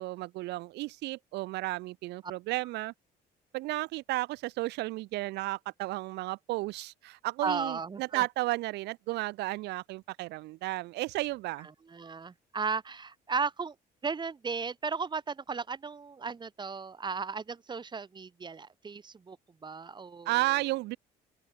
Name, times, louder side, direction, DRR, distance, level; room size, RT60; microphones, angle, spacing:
voice 1, 0.0-2.9 3.5-11.7 20.2-21.0, right 19 dB, 85° right, 1.2 m, -33 dB
voice 2, 7.4-8.3 11.9-13.8 14.0-19.4 19.6-20.4, right 5 dB, 25° right, 1.9 m, -35 dB
open air
cardioid pair, 110°, 17 cm